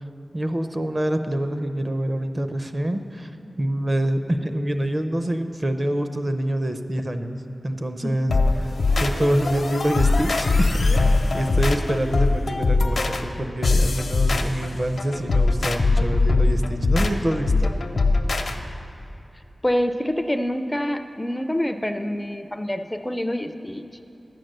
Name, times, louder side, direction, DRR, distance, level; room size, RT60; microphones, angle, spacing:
voice 1, 0.3-3.3 3.6-8.7 9.0-17.7, right 1 dB, 30° right, 8 dB, 0.6 m, -26 dB
sound 1, 8.3-18.6, left 3 dB, 75° left, 0.6 m, -21 dB
voice 2, 19.6-23.9, left 1 dB, 15° left, 8 dB, 0.4 m, -26 dB
11.0 x 7.7 x 6.6 m, 2.8 s
wide cardioid pair, 100°, 0 cm